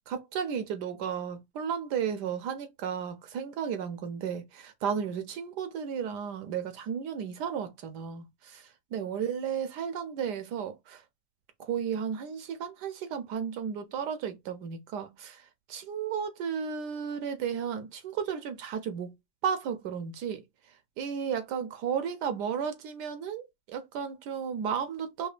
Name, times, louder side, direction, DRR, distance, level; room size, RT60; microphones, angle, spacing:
voice 1, 0.0-11.0 11.6-19.1 19.4-20.4 21.0-25.3, right 7 dB, 70° right, 1.1 m, -34 dB
4.9 x 2.4 x 2.4 m
omnidirectional pair, 2.0 m